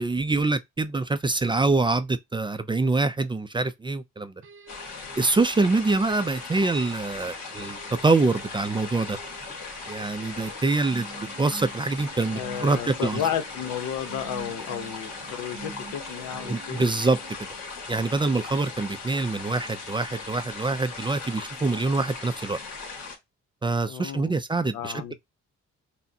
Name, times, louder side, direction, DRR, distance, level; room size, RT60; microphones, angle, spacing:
voice 1, 0.0-4.3 5.2-9.2 9.9-13.2 16.5-17.2 17.9-22.6 23.6-25.1, right 3 dB, 15° right, 0.4 m, -25 dB
sound 1, 4.4-17.6, right 4 dB, 45° right, 0.8 m, -46 dB
sound 2, 4.7-23.2, left 4 dB, 60° left, 1.8 m, -38 dB
voice 2, 12.3-16.9 23.9-24.4 24.7-25.1, left 9 dB, 85° left, 0.9 m, -32 dB
5.7 x 2.1 x 2.7 m
cardioid pair, 90°, 30 cm